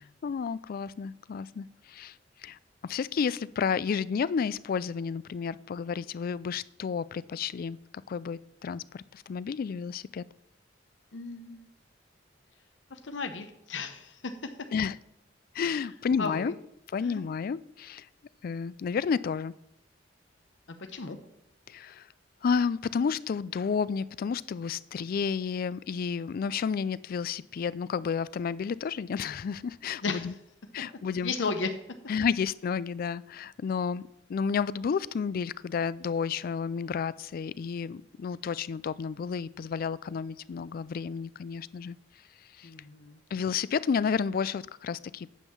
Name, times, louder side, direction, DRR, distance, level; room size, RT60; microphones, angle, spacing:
voice 1, 0.0-2.2 2.4-2.6 2.8-7.8 8.1-10.2 14.7-15.0 15.5-16.5 16.9-18.1 18.4-19.5 21.7-22.1 22.4-30.3 30.7-31.3 32.1-34.0 34.3-42.0 42.6-42.7 43.3-45.3, left 6 dB, 50° left, 19 dB, 0.3 m, -31 dB
voice 2, 11.1-11.7 12.9-14.5 15.7-15.8 16.2-16.5 17.0-17.2 20.9-21.2 30.0-30.3 31.2-31.7 42.6-43.2, left 4 dB, 75° left, 7 dB, 0.8 m, -34 dB
9.2 x 5.5 x 7.0 m, 0.79 s
head